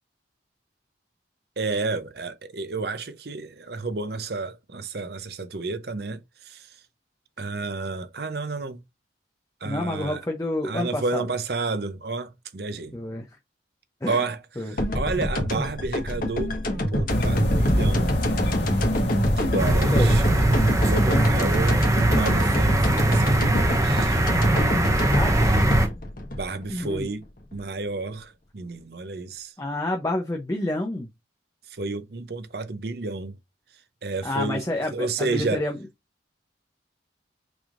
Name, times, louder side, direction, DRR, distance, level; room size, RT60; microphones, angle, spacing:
voice 1, 1.6-6.8 7.4-8.8 9.6-10.2 10.6-12.9 14.1-18.2 19.3-20.2 20.8-24.2 26.3-27.3 27.5-29.5 31.7-33.4 34.0-34.6 34.9-35.6, right 3 dB, 55° right, 0.6 m, -31 dB
voice 2, 9.6-11.3 12.9-13.3 14.0-14.2 14.6-15.0 19.9-20.1 21.0-21.4 25.1-25.3 26.7-27.1 29.6-31.1 34.2-35.8, left 1 dB, 15° left, 0.6 m, -29 dB
sound 1, 14.8-27.6, left 1 dB, 50° left, 1.3 m, -26 dB
sound 2, 17.1-22.1, equal, 70° left, 1.7 m, -26 dB
sound 3, 19.6-25.9, right 1 dB, 15° right, 0.7 m, -21 dB
6.1 x 3.5 x 2.5 m
head